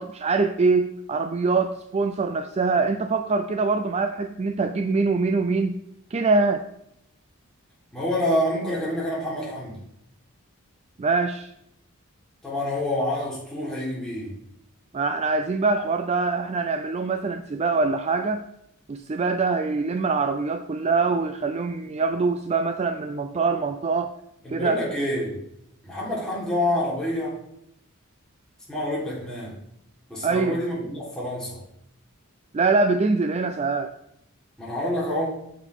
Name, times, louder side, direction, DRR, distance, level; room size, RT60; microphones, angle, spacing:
voice 1, 0.0-5.8 6.1-6.6 11.0-11.5 14.9-18.4 18.9-24.1 24.5-24.8 30.2-30.6 32.5-33.9, right 4 dB, 30° right, 7 dB, 0.4 m, -24 dB
voice 2, 7.9-9.8 12.4-14.3 24.4-25.4 25.8-27.3 28.7-29.6 30.1-31.6 34.6-35.3, left 1 dB, 5° left, -7 dB, 3.6 m, -27 dB
8.1 x 7.8 x 3.6 m, 0.77 s
head